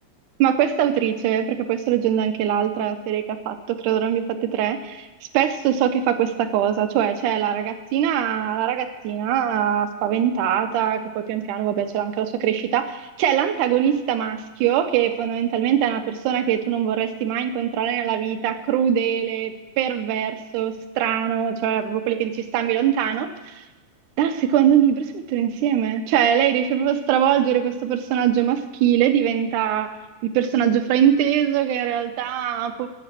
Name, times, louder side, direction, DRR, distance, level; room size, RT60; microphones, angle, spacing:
voice 1, 0.4-5.1 5.3-23.6 24.2-30.0 30.2-32.9, right 9 dB, 90° right, 8 dB, 2.3 m, -22 dB
11.0 x 8.6 x 7.5 m, 1.1 s
omnidirectional pair, 3.4 m